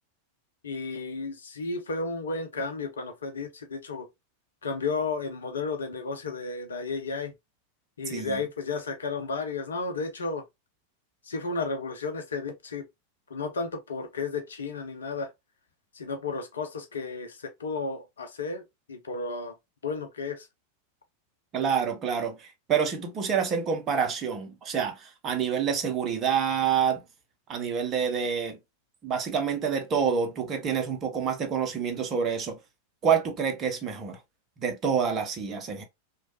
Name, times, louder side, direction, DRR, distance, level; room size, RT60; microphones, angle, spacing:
voice 1, 0.6-4.1 4.6-7.3 8.0-10.4 11.2-12.9 13.3-15.3 15.9-18.6 18.9-19.6 19.8-20.5, left 4 dB, 70° left, 0.5 m, -33 dB
voice 2, 8.1-8.4 21.5-27.0 27.5-28.6 29.0-32.6 33.0-34.2 34.6-35.8, right 7 dB, 30° right, 0.7 m, -27 dB
3.1 x 2.3 x 2.8 m
figure-of-eight pair, 90°, 0 cm